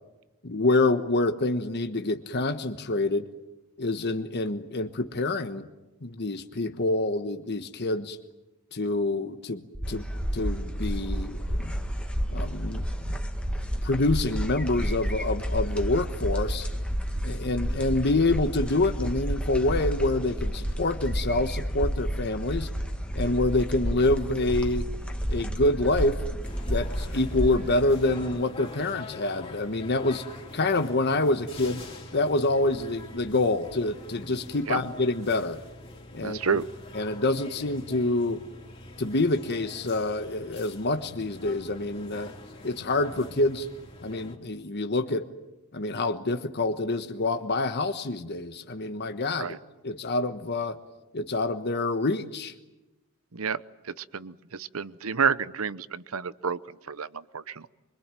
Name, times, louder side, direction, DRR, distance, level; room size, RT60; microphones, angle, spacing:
voice 1, 0.4-3.3 3.8-5.7 6.0-8.2 8.7-10.1 10.3-11.8 12.3-13.2 13.8-16.7 17.2-22.7 23.1-24.9 25.3-26.2 26.7-30.2 30.5-31.8 32.1-35.6 36.1-36.4 36.9-38.4 39.0-42.3 42.6-43.7 44.0-45.3 45.7-49.6 49.8-50.8 51.1-52.5, left 2 dB, 50° left, 8 dB, 1.3 m, -27 dB
sound 1, 9.7-27.6, equal, 25° right, 2.0 m, -31 dB
sound 2, 9.8-28.4, equal, 5° left, 2.0 m, -42 dB
sound 3, 26.4-44.4, left 2 dB, 25° left, 3.5 m, -45 dB
voice 2, 36.2-36.7 49.4-49.6 53.3-56.6 56.9-57.7, right 6 dB, 75° right, 17 dB, 0.9 m, -30 dB
25.0 x 23.5 x 9.1 m, 1.0 s
head